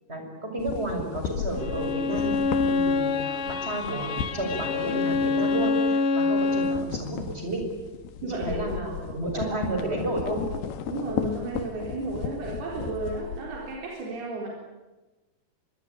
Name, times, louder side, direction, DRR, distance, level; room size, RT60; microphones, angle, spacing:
voice 1, 0.1-2.3 2.7-7.6 8.3-10.4, right 1 dB, 15° right, 3 dB, 6.3 m, -31 dB
sound 1, 0.6-6.0 6.3-13.8, left 8 dB, 85° left, 3.5 m, -35 dB
Bowed string instrument, 1.6-6.9, left 3 dB, 70° left, 1.3 m, -26 dB
voice 2, 8.2-9.0 9.3-9.4 9.8-9.9 10.8-14.5, right 3 dB, 75° right, -2 dB, 5.9 m, -33 dB
26.0 x 22.5 x 9.9 m, 1.1 s
omnidirectional pair, 4.5 m